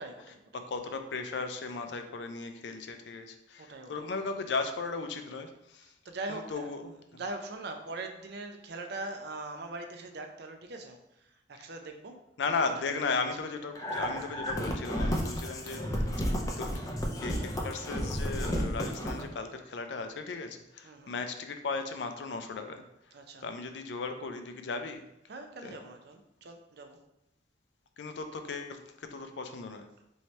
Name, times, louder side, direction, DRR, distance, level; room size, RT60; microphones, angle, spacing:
voice 1, 0.0-1.0 3.6-4.1 5.8-6.7 7.1-12.2 13.0-13.2 20.8-21.2 23.1-23.4 25.3-27.0, right 2 dB, 65° right, 5 dB, 0.5 m, -42 dB
voice 2, 0.7-5.9 6.3-6.9 12.4-15.8 16.2-16.3 16.6-16.7 17.2-22.8 23.4-25.1 25.6-25.8 28.0-29.9, left 4 dB, 70° left, 7 dB, 0.4 m, -36 dB
sound 1, 13.8-19.2, equal, 20° left, 0.5 m, -32 dB
3.1 x 2.7 x 4.4 m, 0.86 s
head